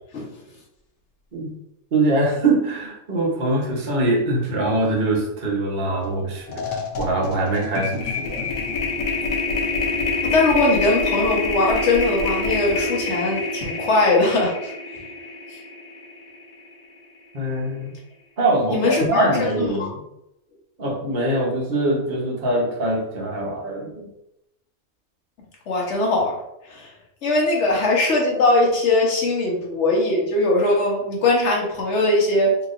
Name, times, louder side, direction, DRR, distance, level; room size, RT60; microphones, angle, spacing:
voice 1, 1.9-8.5 17.3-17.9 18.4-20.0 20.8-24.1, right 2 dB, 40° right, -2 dB, 0.9 m, -23 dB
sound 1, 6.0-6.2 6.5-16.7, left 3 dB, 80° left, 1.1 m, -26 dB
voice 2, 10.2-14.7 18.7-19.9 25.7-26.4 26.7-26.9 27.2-32.6, left 2 dB, 55° left, -2 dB, 1.2 m, -20 dB
3.8 x 2.9 x 2.5 m, 0.85 s
omnidirectional pair, 1.5 m